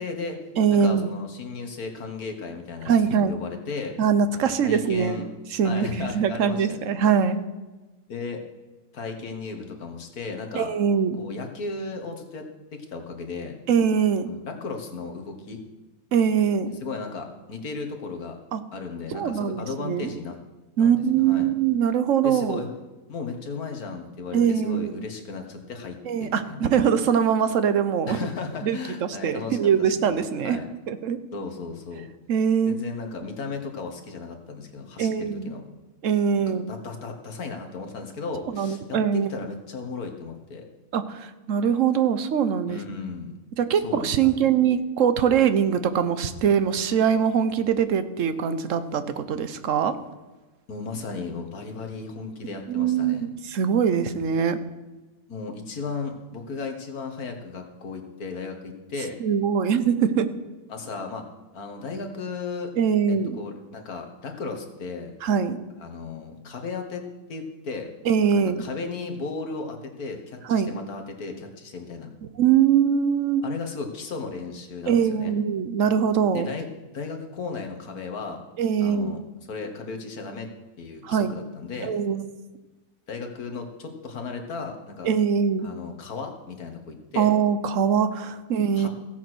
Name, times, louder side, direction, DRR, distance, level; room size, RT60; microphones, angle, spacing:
voice 1, 0.0-0.4 0.7-4.0 4.3-5.3 5.6-6.9 8.1-8.4 8.9-10.7 11.2-12.4 12.7-13.6 14.3-15.6 16.8-18.4 18.7-20.4 20.8-21.5 22.2-22.7 23.1-26.7 28.1-30.7 31.3-32.1 32.7-35.6 36.7-40.7 42.7-43.3 43.8-44.5 50.7-53.3 55.3-59.2 60.7-61.3 61.5-62.7 63.1-65.1 65.8-67.0 67.3-67.9 68.3-72.1 73.4-75.3 76.3-76.7 76.9-78.4 78.8-79.2 79.5-80.5 80.8-81.9 83.1-85.1 85.6-87.3 88.8-88.9, left 4 dB, 75° left, 4 dB, 2.1 m, -35 dB
voice 2, 0.6-1.1 2.9-3.3 4.0-5.2 5.5-7.4 10.5-11.2 13.7-14.3 16.1-16.7 18.5-18.6 19.1-20.1 20.8-22.6 24.3-25.1 26.0-28.3 28.6-30.6 30.9-31.2 32.3-32.7 35.0-35.5 36.0-36.7 38.5-39.3 40.9-42.8 43.6-50.0 52.7-54.6 59.2-60.3 62.8-63.4 65.2-65.6 68.0-68.6 70.5-70.7 72.4-73.5 74.9-76.5 78.6-79.2 81.0-81.4 81.8-82.2 85.0-85.7 87.2-88.9, right 7 dB, 60° right, 12 dB, 1.2 m, -22 dB
15.5 x 8.4 x 6.2 m, 1.2 s
omnidirectional pair, 1.6 m